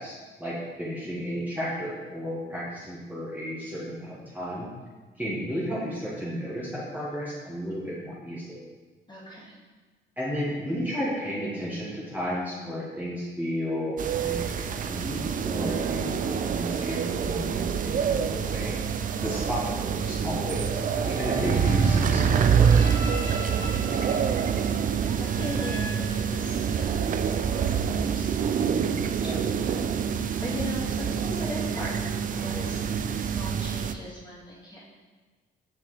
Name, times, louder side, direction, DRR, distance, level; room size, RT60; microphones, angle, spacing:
voice 1, 0.0-4.7 5.2-8.6 10.2-18.8 19.2-22.9 28.6-29.4, equal, 10° right, -8 dB, 1.8 m, -33 dB
voice 2, 9.1-9.6 19.2-19.6 23.3-24.7 25.2-29.8 30.1-32.8 33.2-34.8, equal, 20° left, -6 dB, 2.2 m, -39 dB
sound 1, 14.0-33.9, right 7 dB, 45° right, 0.4 m, -26 dB
sound 2, 20.8-26.9, left 1 dB, 80° left, 1.3 m, -41 dB
6.8 x 5.9 x 3.3 m, 1.4 s
cardioid pair, 90°, 20 cm